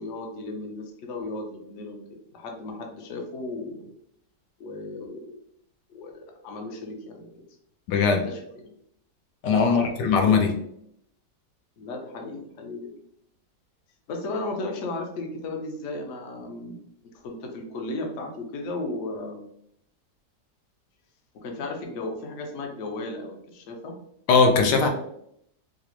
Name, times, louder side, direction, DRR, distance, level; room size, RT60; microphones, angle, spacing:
voice 1, 0.0-2.0 2.3-3.9 4.6-5.3 5.9-7.3 8.3-8.7 9.6-10.1 11.8-12.9 14.1-16.8 17.2-19.5 21.3-23.9 24.6-24.9, left 2 dB, 60° left, 2 dB, 0.8 m, -35 dB
voice 2, 7.9-8.2 9.4-10.5 24.3-24.9, left 5 dB, 75° left, 4 dB, 1.2 m, -20 dB
4.8 x 2.0 x 2.9 m, 0.72 s
omnidirectional pair, 1.9 m